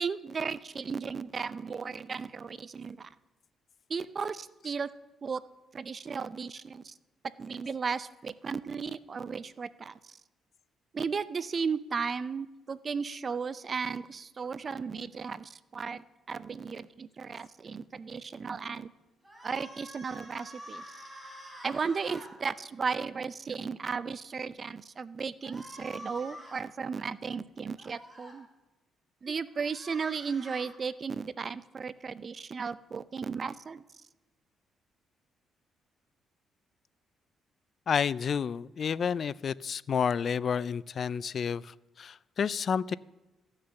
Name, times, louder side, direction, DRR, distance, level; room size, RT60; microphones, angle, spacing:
voice 1, 0.0-3.1 3.9-4.9 5.2-5.4 5.7-6.9 7.4-10.2 10.9-18.9 19.4-21.0 21.6-28.5 29.2-33.8, right 5 dB, 40° right, 16 dB, 0.5 m, -35 dB
sound 1, 19.2-22.3 25.4-26.6 27.8-28.3 29.5-30.7, equal, 5° right, 4.4 m, -47 dB
voice 2, 37.9-42.9, left 7 dB, 50° left, 21 dB, 0.3 m, -30 dB
14.0 x 6.5 x 7.0 m, 1.1 s
cardioid pair, 90°, 0 cm